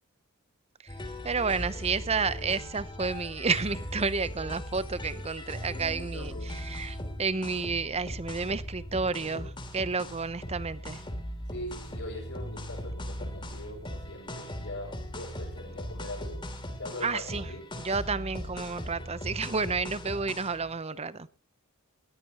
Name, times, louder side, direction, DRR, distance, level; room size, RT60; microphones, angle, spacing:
sound 1, 0.9-20.7, equal, 20° left, 3.1 m, -39 dB
voice 1, 1.2-11.0 17.0-17.5 17.8-21.3, right 4 dB, 30° right, 15 dB, 0.8 m, -31 dB
voice 2, 6.1-6.6 8.9-9.5 10.0-10.1 11.5-16.4 16.8-17.7, left 1 dB, 60° left, -6 dB, 6.4 m, -42 dB
20.0 x 14.5 x 3.0 m, 0.31 s
head